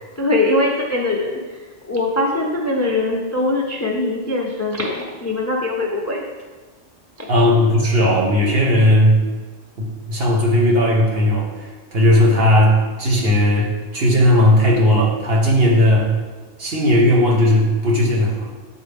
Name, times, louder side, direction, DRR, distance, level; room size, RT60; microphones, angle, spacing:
voice 1, 0.2-6.2 7.2-7.3, left 2 dB, 20° left, -1 dB, 0.4 m, -22 dB
voice 2, 7.3-9.2 9.8-16.1 16.6-18.5, left 1 dB, 55° right, -3 dB, 1.3 m, -16 dB
8.4 x 4.1 x 3.5 m, 1.4 s
omnidirectional pair, 1.2 m